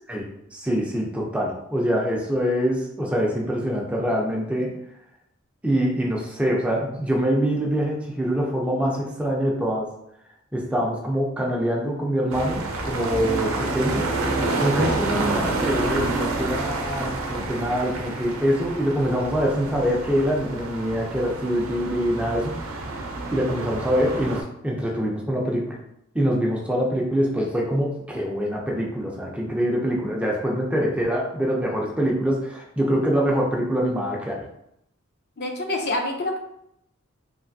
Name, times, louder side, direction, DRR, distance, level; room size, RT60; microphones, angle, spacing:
voice 1, 0.5-4.7 5.6-9.9 10.5-14.1 14.6-22.8 23.3-25.8 26.1-34.4, equal, 5° right, -2 dB, 0.4 m, -24 dB
sound 1, 12.3-24.4, right 2 dB, 80° right, 0.5 m, -28 dB
voice 2, 35.4-36.4, left 2 dB, 55° left, 2 dB, 0.5 m, -26 dB
3.2 x 2.5 x 2.5 m, 0.78 s
head